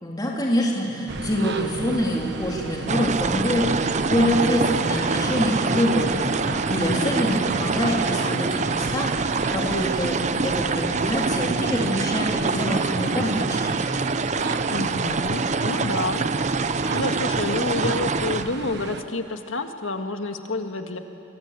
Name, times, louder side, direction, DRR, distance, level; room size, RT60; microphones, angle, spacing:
voice 1, 0.0-13.9, equal, 20° left, -3 dB, 3.6 m, -25 dB
sound 1, 1.1-19.0, right 2 dB, 60° right, 1.2 m, -32 dB
sound 2, 2.9-18.4, right 4 dB, 35° right, 0.7 m, -25 dB
voice 2, 6.7-7.1 14.7-16.6 16.9-21.0, left 2 dB, 85° left, 5 dB, 1.9 m, -29 dB
26.0 x 25.0 x 8.4 m, 2.7 s
head